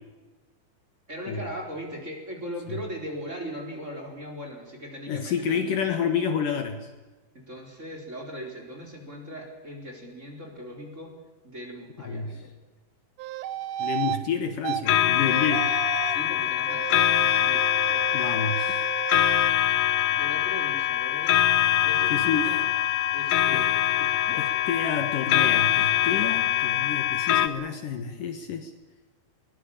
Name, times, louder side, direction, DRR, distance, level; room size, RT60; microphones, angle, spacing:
voice 1, 1.1-5.8 7.3-11.1 11.4-12.5 16.1-18.4 20.1-21.4 21.8-22.6 23.1-23.7 24.0-24.6, equal, 20° right, 1 dB, 4.3 m, -39 dB
voice 2, 5.1-6.9 12.0-12.4 13.8-15.7 18.1-18.8 22.1-22.5 23.5-23.6 24.4-28.7, left 6 dB, 65° left, 6 dB, 2.8 m, -29 dB
sound 1, 13.2-14.2 14.6-14.8 15.2-16.3 16.7-19.5, right 13 dB, 75° right, 1.9 m, -33 dB
sound 2, 14.9-27.5, left 13 dB, 80° left, 1.6 m, -23 dB
22.0 x 19.5 x 8.7 m, 1.2 s
omnidirectional pair, 4.5 m